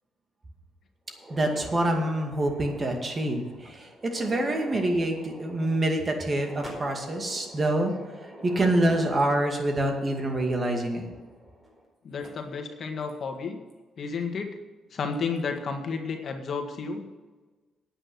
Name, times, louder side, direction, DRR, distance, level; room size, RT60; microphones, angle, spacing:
sound 1, 1.1-11.8 12.2-12.3 13.1-13.2 13.7-13.8 15.1-15.4, right 1 dB, 20° right, 4.5 m, -45 dB
voice 1, 1.3-7.9 8.4-11.1, right 1 dB, 35° right, 3 dB, 2.2 m, -26 dB
voice 2, 12.0-13.6 14.0-14.6 14.9-17.1, left 5 dB, 55° left, 4 dB, 1.7 m, -32 dB
9.2 x 8.8 x 6.2 m, 1.3 s
cardioid pair, 90°, 0 cm